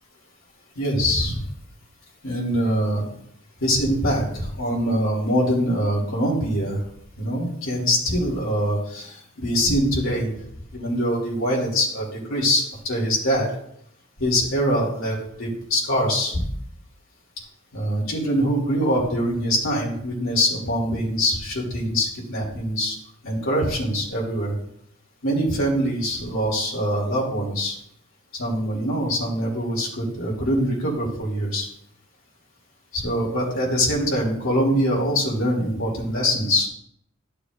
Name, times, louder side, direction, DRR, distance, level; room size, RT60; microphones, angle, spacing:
voice 1, 0.7-1.4 2.2-3.0 3.6-6.8 7.2-10.3 10.7-13.5 14.2-16.3 17.7-22.9 23.2-24.5 25.2-27.7 28.4-31.7 32.9-36.7, equal, 75° left, -3 dB, 2.9 m, -23 dB
12.5 x 6.7 x 2.6 m, 0.71 s
head